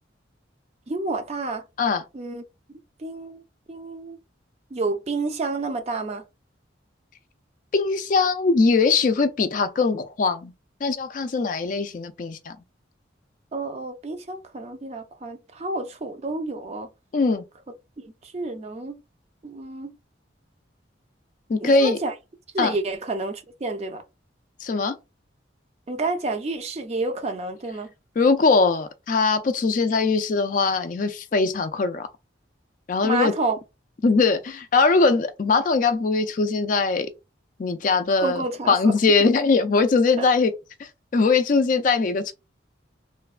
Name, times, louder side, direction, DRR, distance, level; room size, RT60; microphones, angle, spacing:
voice 1, 0.9-1.6 2.1-2.4 3.0-3.4 3.7-4.2 4.7-6.2 13.5-16.9 18.0-19.0 19.4-19.9 21.6-22.1 22.5-24.0 25.9-27.9 33.0-33.6 38.2-38.9 40.2-40.3, right 3 dB, 35° right, 0.4 m, -29 dB
voice 2, 7.7-10.5 10.8-12.6 17.1-17.4 21.5-22.0 22.6-22.8 24.6-24.9 28.2-32.1 32.9-33.3 34.0-37.1 37.6-40.5 40.8-42.3, left 4 dB, 45° left, 0.3 m, -21 dB
3.1 x 2.2 x 2.3 m
head